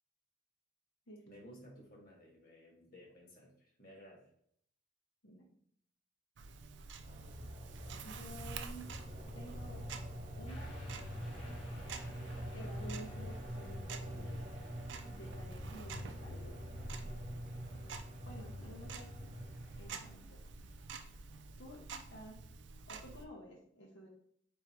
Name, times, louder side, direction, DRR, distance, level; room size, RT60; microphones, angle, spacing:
voice 1, 1.3-4.3, equal, 45° left, -1 dB, 1.5 m, -56 dB
Tick-tock, 6.4-23.2, right 4 dB, 60° right, 0.4 m, -49 dB
sound 1, 7.0-20.1, equal, 40° right, 1.1 m, -45 dB
voice 2, 8.0-8.9 9.3-9.8 10.4-10.8 12.5-14.5 15.0-16.6 18.2-19.3 19.8-20.4 21.6-22.4 22.9-24.1, right 1 dB, 65° left, -1 dB, 0.9 m, -52 dB
sound 2, 10.5-21.4, equal, 30° left, 1.0 m, -58 dB
4.7 x 3.6 x 3.0 m, 0.66 s
head